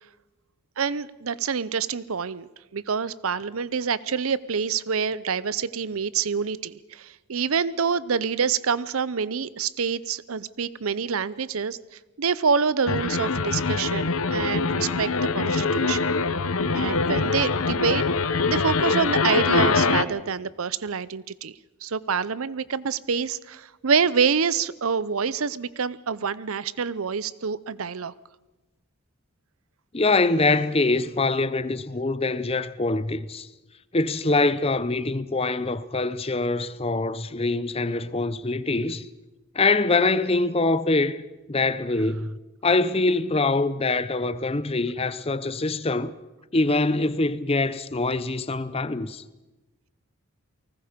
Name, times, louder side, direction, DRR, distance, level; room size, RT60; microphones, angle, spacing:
voice 1, 0.8-11.8 12.2-16.1 16.7-18.0 18.5-21.5 21.8-28.1, right 6 dB, 75° right, 0.7 m, -26 dB
sound 1, 12.9-20.0, left 4 dB, 75° left, 1.0 m, -23 dB
voice 2, 29.9-33.5 33.9-39.1 39.5-46.1 46.5-49.2, left 3 dB, 25° left, 0.7 m, -24 dB
30.0 x 19.5 x 5.1 m
head